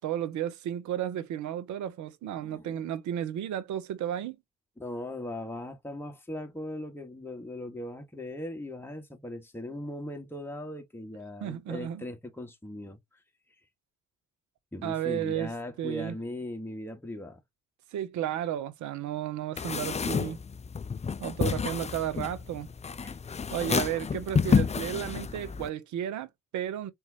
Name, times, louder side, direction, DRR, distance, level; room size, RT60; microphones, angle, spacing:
voice 1, 0.0-4.4 11.4-12.0 14.8-15.5 15.8-16.2 17.9-20.4 21.2-22.7 23.5-26.9, right 11 dB, 75° right, 0.8 m, -33 dB
voice 2, 2.4-2.8 4.8-13.2 14.7-17.4 23.0-23.4, left 1 dB, 5° left, 1.7 m, -39 dB
sound 1, 19.6-25.7, left 6 dB, 25° left, 0.4 m, -29 dB
4.2 x 3.6 x 2.9 m
hypercardioid pair, 40°, 29 cm